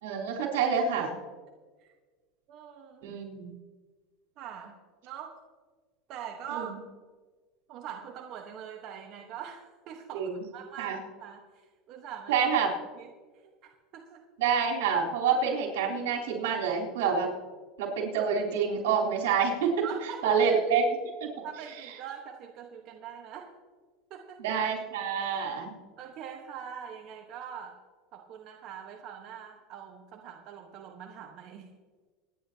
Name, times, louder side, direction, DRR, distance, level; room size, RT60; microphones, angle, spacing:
voice 1, 0.0-1.1 3.0-3.5 6.5-6.7 10.1-10.3 10.8-11.0 12.3-12.7 14.4-17.3 17.8-19.8 20.2-20.8 21.2-21.5 24.4-25.7, right 6 dB, 85° right, -2 dB, 3.8 m, -27 dB
voice 2, 2.5-3.1 4.4-4.7 5.0-5.3 6.1-6.7 7.7-12.4 13.0-13.1 13.4-14.2 19.8-20.4 21.4-23.5 24.1-24.4 26.0-27.7 28.1-31.7, right 8 dB, 50° right, 2 dB, 1.3 m, -43 dB
25.0 x 10.0 x 2.9 m, 1.4 s
supercardioid pair, 125°, 0 cm